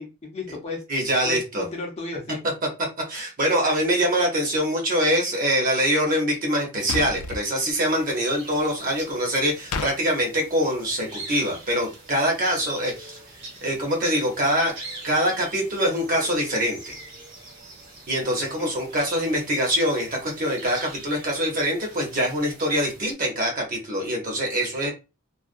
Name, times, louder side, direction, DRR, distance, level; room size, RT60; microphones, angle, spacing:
voice 1, 0.0-0.8 1.2-2.4 18.6-18.7, left 3 dB, 30° left, 1 dB, 0.5 m, -34 dB
voice 2, 0.9-1.6 3.1-13.2 13.6-14.7 15.0-16.9 18.1-24.9, equal, 40° right, 0 dB, 0.9 m, -24 dB
sound 1, 6.9-7.4 9.7-9.9, left 4 dB, 85° left, 0.4 m, -29 dB
sound 2, 7.7-23.1, right 2 dB, 60° right, 1.2 m, -43 dB
2.4 x 2.2 x 2.5 m, 0.28 s
head